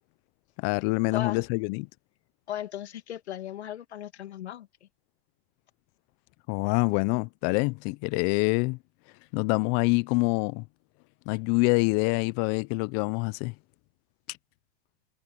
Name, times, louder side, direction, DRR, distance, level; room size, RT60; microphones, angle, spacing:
voice 1, 0.6-1.9 6.5-8.8 9.3-10.6 11.3-13.5, left 28 dB, 45° left, 0.8 m, -26 dB
voice 2, 2.5-4.7, left 11 dB, 85° left, 2.6 m, -36 dB
hypercardioid pair, 115°, 32 cm